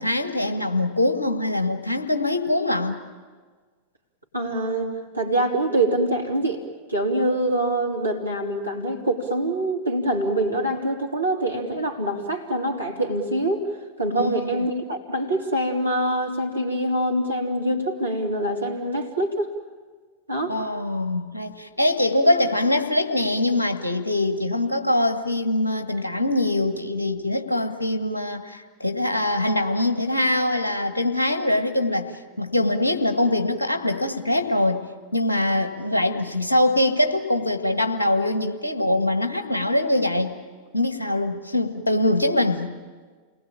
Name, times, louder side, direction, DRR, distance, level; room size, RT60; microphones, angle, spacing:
voice 1, 0.0-3.0 14.1-14.6 20.5-32.1 32.4-34.8 35.1-40.3 40.7-42.7, left 1 dB, 80° left, 6 dB, 1.7 m, -23 dB
voice 2, 4.3-6.6 6.9-13.7 14.0-19.5 20.3-20.6, right 1 dB, 85° right, 1 dB, 3.1 m, -25 dB
29.5 x 19.5 x 8.8 m, 1.5 s
figure-of-eight pair, 90°, 0 cm